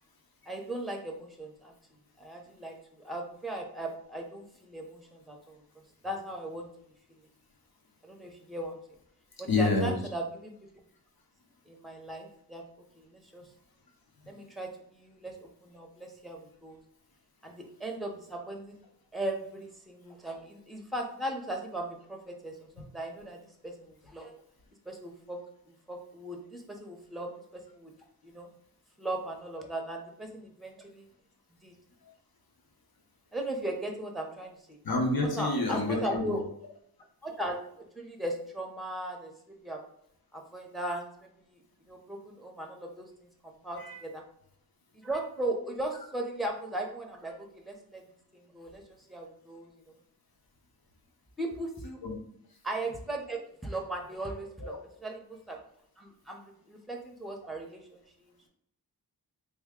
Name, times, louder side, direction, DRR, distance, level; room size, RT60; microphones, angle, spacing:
voice 1, 0.5-1.7 2.2-5.6 6.0-6.7 7.1-7.2 8.0-8.8 9.4-10.5 11.7-12.6 13.0-13.4 14.3-16.8 17.4-18.8 19.1-24.4 24.9-25.4 25.9-27.9 28.2-28.5 29.0-31.1 31.6-31.7 33.3-34.8 35.3-36.4 37.2-39.8 40.3-41.1 41.4-41.6 41.9-44.2 44.9-48.0 48.5-48.8 49.1-49.9 51.4-52.0 52.6-54.7 55.0-55.6 56.0-58.3, right 1 dB, ahead, 2 dB, 0.7 m, -38 dB
voice 2, 9.3-10.0 34.8-36.4 43.8-44.0 52.0-52.1 54.6-54.8, left 2 dB, 65° left, 2 dB, 0.9 m, -28 dB
3.4 x 2.2 x 3.6 m, 0.69 s
wide cardioid pair, 75°, 38 cm